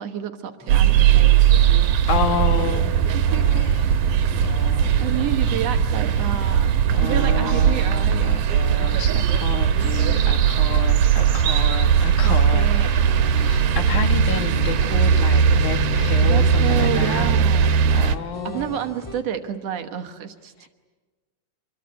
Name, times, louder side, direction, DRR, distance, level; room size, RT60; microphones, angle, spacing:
voice 1, 0.0-1.4 3.1-3.7 5.0-6.7 7.0-8.3 9.1-9.4 12.2-12.9 16.2-17.8 18.4-20.7, right 10 dB, 65° right, 5 dB, 2.3 m, -30 dB
sound 1, 0.6-19.2, left 1 dB, 5° left, 2.8 m, -42 dB
sound 2, 0.7-18.2, right 8 dB, 90° right, 2.5 m, -19 dB
voice 2, 2.1-3.8 4.4-5.4 6.1-6.6 6.9-17.3 17.9-18.8, left 5 dB, 90° left, 6 dB, 3.3 m, -30 dB
26.5 x 21.5 x 9.5 m, 1.3 s
omnidirectional pair, 3.3 m